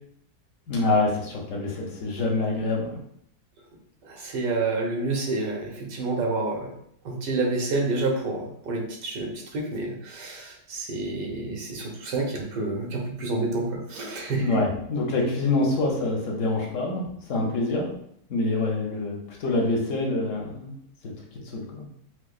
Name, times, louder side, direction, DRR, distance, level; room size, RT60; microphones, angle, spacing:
voice 1, 0.7-3.0 14.4-17.0 17.3-17.9 18.3-20.7 21.5-21.9, left 2 dB, 60° left, -1 dB, 1.0 m, -26 dB
voice 2, 4.0-6.7 7.0-14.5, right 3 dB, 90° right, -1 dB, 1.4 m, -29 dB
4.6 x 2.1 x 2.4 m, 0.71 s
omnidirectional pair, 1.8 m